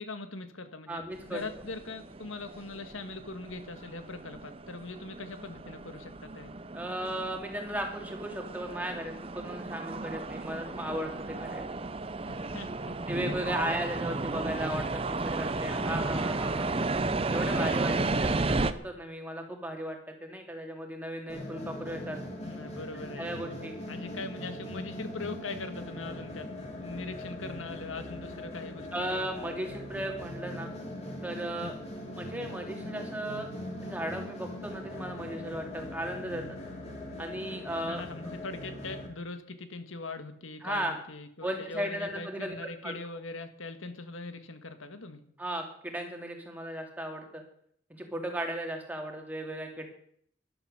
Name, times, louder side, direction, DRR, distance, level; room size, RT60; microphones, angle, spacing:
voice 1, 0.0-6.5 12.3-13.3 22.4-23.4 23.9-26.5 26.8-29.3 31.6-31.8 37.8-45.2, left 3 dB, 85° left, 9 dB, 1.7 m, -41 dB
voice 2, 0.9-1.4 6.7-11.7 13.1-16.7 17.3-22.2 23.2-23.7 28.9-30.7 31.2-31.8 32.2-33.5 33.8-36.6 37.2-38.0 40.6-41.0 41.4-42.6 42.8-43.0 45.4-47.4 48.0-49.9, right 1 dB, 10° right, 2 dB, 2.4 m, -36 dB
sound 1, 1.1-18.7, right 3 dB, 30° right, 0.6 m, -33 dB
sound 2, 21.3-39.1, left 1 dB, 30° left, 3.2 m, -41 dB
13.0 x 11.5 x 6.6 m, 0.66 s
head